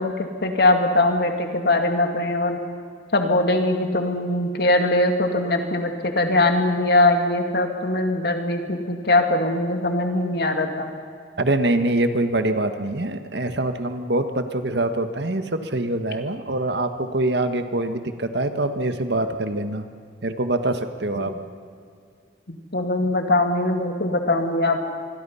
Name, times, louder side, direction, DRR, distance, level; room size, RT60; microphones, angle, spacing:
voice 1, 0.0-2.6 3.1-10.9 21.2-21.3 22.5-24.9, left 2 dB, 60° left, 4 dB, 2.4 m, -21 dB
voice 2, 11.4-19.9 20.2-21.3, right 2 dB, 70° right, 8 dB, 1.5 m, -24 dB
26.0 x 22.0 x 5.7 m, 2.3 s
head